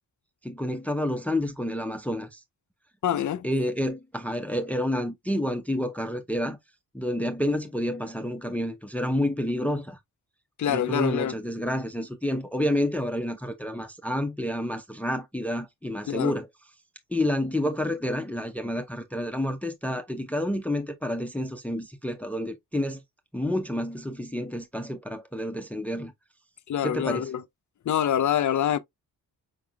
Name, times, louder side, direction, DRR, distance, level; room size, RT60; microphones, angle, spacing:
voice 1, 0.4-2.4 3.4-6.6 6.9-10.0 10.7-16.5 17.1-23.0 23.3-26.1 26.8-27.3, left 1 dB, 5° left, 0.7 m, -29 dB
voice 2, 3.0-3.5 10.6-11.3 16.1-16.3 26.7-27.4 27.9-28.8, left 10 dB, 45° left, 0.6 m, -25 dB
5.2 x 3.6 x 2.2 m
supercardioid pair, 50°, 41 cm